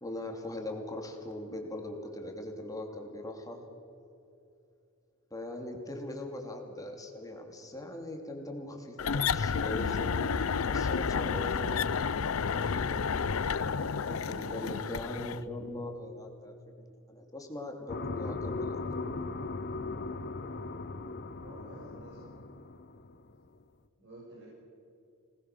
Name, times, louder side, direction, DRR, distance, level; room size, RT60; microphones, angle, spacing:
voice 1, 0.0-3.7 5.3-11.7 12.5-18.9, left 1 dB, 15° left, 2 dB, 2.9 m, -41 dB
sound 1, 9.0-15.4, left 6 dB, 80° left, 0.6 m, -31 dB
sound 2, 17.9-23.3, left 3 dB, 50° left, 0.9 m, -38 dB
voice 2, 21.2-22.3 24.0-24.5, right 1 dB, 60° right, -5 dB, 6.9 m, -50 dB
26.0 x 20.0 x 6.8 m, 2.7 s
head